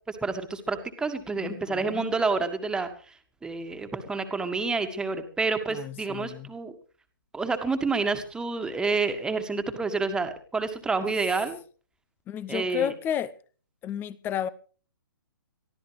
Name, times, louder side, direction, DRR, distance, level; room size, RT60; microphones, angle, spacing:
voice 1, 0.1-3.1 3.4-6.7 7.3-11.6 12.5-12.9, right 4 dB, 5° right, 1.9 m, -29 dB
voice 2, 1.4-2.1 5.7-6.5 12.3-13.3 13.8-14.5, left 9 dB, 15° left, 0.8 m, -32 dB
23.0 x 15.0 x 3.3 m
figure-of-eight pair, 130°, 12 cm